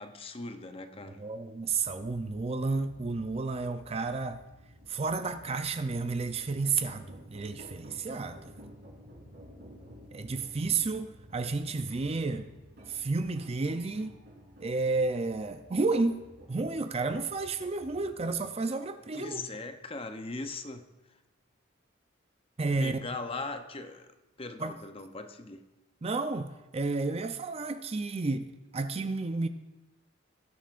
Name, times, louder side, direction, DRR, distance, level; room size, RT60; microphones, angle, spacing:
voice 1, 0.0-1.2 19.1-20.9 22.8-24.1 24.4-25.7, left 3 dB, 30° left, 0.7 m, -39 dB
voice 2, 1.1-4.4 4.9-8.5 10.1-12.5 12.9-14.2 14.6-16.2 16.5-19.4 22.6-23.0 24.6-24.8 26.0-28.5 28.7-29.5, right 3 dB, 30° right, 0.5 m, -31 dB
sound 1, 1.7-18.4, equal, 55° right, 3.8 m, -53 dB
20.0 x 9.2 x 2.5 m
head